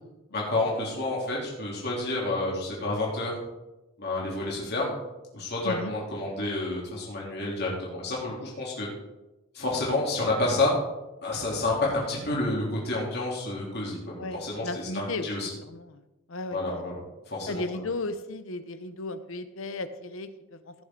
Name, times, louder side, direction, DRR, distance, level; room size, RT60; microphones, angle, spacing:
voice 1, 0.3-3.3 4.0-4.9 5.3-8.9 9.5-10.7 11.2-15.5 16.5-16.9 17.3-17.6, left 2 dB, 50° left, -4 dB, 3.2 m, -29 dB
voice 2, 14.2-15.3 15.7-16.0 16.3-16.9 17.5-20.7, left 2 dB, 70° left, 11 dB, 0.8 m, -35 dB
17.0 x 6.9 x 3.8 m, 1.0 s
head